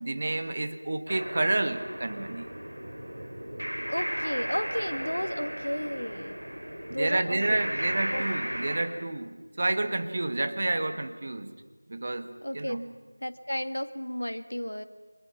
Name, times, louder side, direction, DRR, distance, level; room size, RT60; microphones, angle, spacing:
voice 1, 0.0-2.5 7.0-11.5 11.9-12.8, right 2 dB, 35° right, 9 dB, 1.3 m, -29 dB
sound 1, 1.1-8.8, equal, 70° right, 4.3 m, -35 dB
voice 2, 3.9-6.4 6.9-7.6 8.1-8.3 12.4-12.9 13.2-14.9, equal, 75° left, 10 dB, 1.8 m, -33 dB
30.0 x 25.5 x 5.8 m, 1.3 s
figure-of-eight pair, 170°, 0 cm